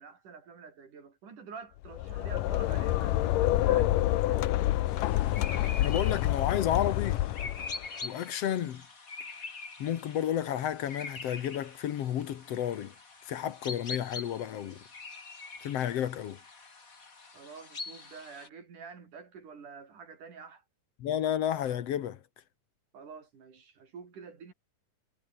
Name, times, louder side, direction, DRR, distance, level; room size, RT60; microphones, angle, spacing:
voice 1, 0.0-4.6 17.3-20.6 22.9-24.5, right 5 dB, 70° right, 5.5 m, -48 dB
sound 1, 1.8-7.9, left 15 dB, 85° left, 2.6 m, -28 dB
sound 2, 4.9-18.5, left 4 dB, 25° left, 2.8 m, -44 dB
voice 2, 5.8-7.2 8.0-8.8 9.8-12.9 13.3-14.8 15.6-16.4 21.0-22.2, left 10 dB, 60° left, 2.0 m, -31 dB
omnidirectional pair, 3.8 m